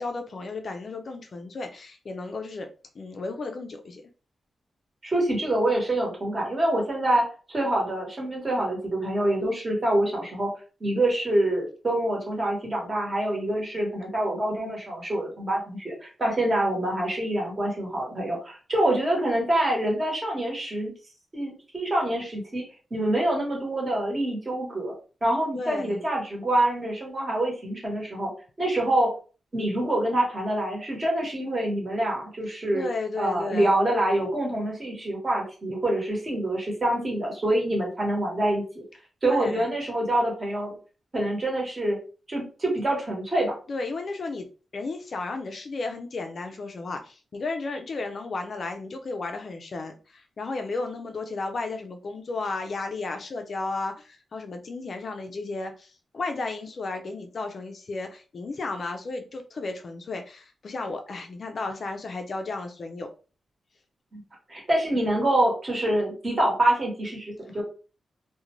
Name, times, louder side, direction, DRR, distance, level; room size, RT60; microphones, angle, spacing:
voice 1, 0.0-2.7 3.0-4.0 25.5-26.0 32.7-33.7 39.2-39.7 43.7-44.5 44.7-63.1, left 3 dB, 45° left, 0.3 m, -33 dB
voice 2, 5.0-7.2 7.5-10.5 10.8-20.9 21.3-22.6 22.9-24.9 25.2-28.3 28.6-29.1 29.5-32.9 33.2-38.8 39.2-40.7 41.1-42.0 42.3-43.5 64.1-64.2 64.5-67.6, right 1 dB, 25° right, 1.1 m, -26 dB
2.4 x 2.1 x 3.0 m
wide cardioid pair, 150°, 0 cm